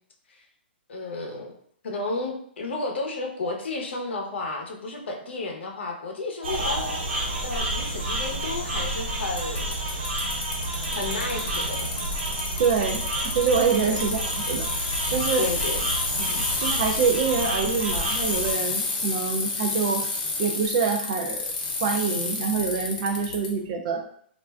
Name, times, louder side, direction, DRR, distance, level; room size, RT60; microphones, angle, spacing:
voice 1, 0.9-1.5 1.8-9.8 10.9-11.9 13.8-14.0 15.4-15.8, left 3 dB, 80° left, 1 dB, 0.7 m, -32 dB
sound 1, 6.4-18.5, right 1 dB, 80° right, 0.9 m, -30 dB
Bicycle, 9.4-23.5, left 3 dB, 35° left, 0.6 m, -30 dB
voice 2, 12.6-14.2 14.5-14.7 15.1-15.5 16.2-20.0 20.4-21.5 21.8-24.0, right 5 dB, 35° right, 4 dB, 0.3 m, -25 dB
3.2 x 2.4 x 2.3 m, 0.64 s
hypercardioid pair, 165°, 6 cm